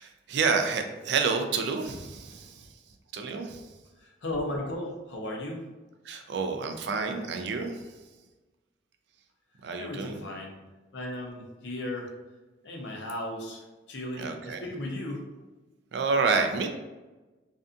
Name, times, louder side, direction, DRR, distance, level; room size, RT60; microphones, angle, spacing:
voice 1, 0.0-2.7 3.1-3.7 6.0-7.9 9.6-10.2 14.2-14.7 15.9-16.7, right 4 dB, 65° right, 5 dB, 0.3 m, -29 dB
voice 2, 4.0-5.7 9.8-10.6 10.9-12.1 12.6-15.3, left 1 dB, 70° left, 0 dB, 0.6 m, -36 dB
2.6 x 2.3 x 2.4 m, 1.1 s
head